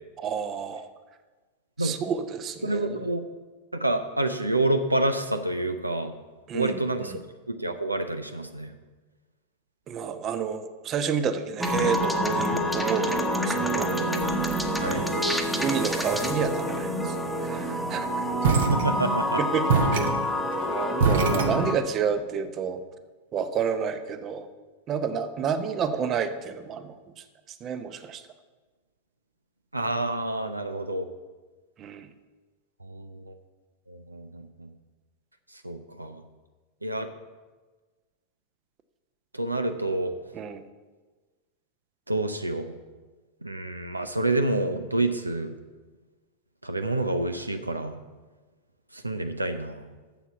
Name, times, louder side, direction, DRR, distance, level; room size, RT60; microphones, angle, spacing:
voice 1, 0.2-0.9 1.8-3.1 6.5-7.2 9.9-14.0 15.6-18.3 19.4-20.1 20.7-22.8 23.3-24.5 24.9-27.2 27.6-28.2 31.8-32.1 40.3-40.6, right 7 dB, 30° right, 10 dB, 0.7 m, -30 dB
voice 2, 2.6-3.2 3.7-6.1 6.5-7.2 7.5-8.7 14.8-15.0 18.7-19.4 29.7-31.1 32.8-33.3 33.9-34.7 35.6-36.2 36.8-37.1 39.3-40.2 42.1-42.7 43.4-45.5 46.6-48.0 48.9-49.9, right 2 dB, 85° right, 8 dB, 0.6 m, -28 dB
sound 1, 11.6-21.8, equal, ahead, 1.0 m, -27 dB
sound 2, 18.4-19.3 19.7-22.1, right 5 dB, 60° right, 0.9 m, -25 dB
7.1 x 7.1 x 7.0 m, 1.3 s
figure-of-eight pair, 90°, 0 cm